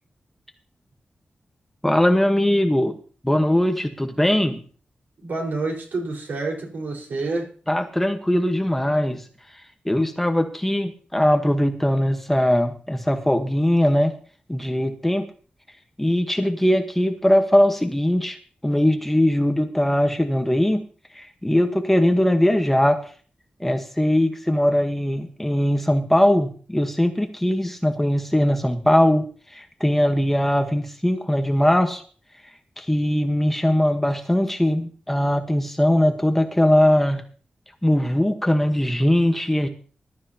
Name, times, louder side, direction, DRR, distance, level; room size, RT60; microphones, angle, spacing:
voice 1, 1.8-3.0 3.2-4.6 7.7-9.2 9.8-14.1 14.5-15.3 16.0-18.4 18.6-20.8 21.1-23.0 23.6-29.2 29.5-32.0 32.8-37.2 37.8-39.7, left 1 dB, 5° left, 5 dB, 1.2 m, -20 dB
voice 2, 5.2-7.5, right 3 dB, 85° right, 0 dB, 4.6 m, -28 dB
20.0 x 12.5 x 2.9 m, 0.41 s
wide cardioid pair, 170°, 3 cm